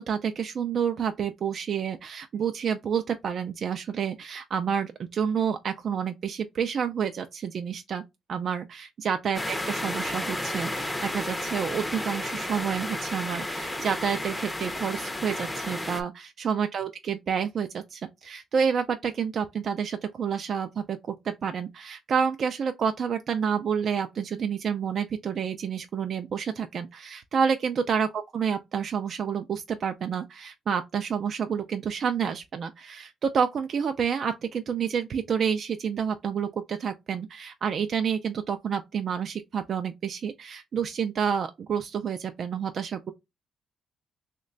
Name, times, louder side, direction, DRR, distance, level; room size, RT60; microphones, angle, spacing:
voice 1, 0.0-8.0 8.3-43.1, right 7 dB, 55° right, 0.3 m, -29 dB
sound 1, 9.3-16.0, left 1 dB, 15° left, 0.5 m, -32 dB
3.1 x 2.2 x 3.7 m
cardioid pair, 90°, 0 cm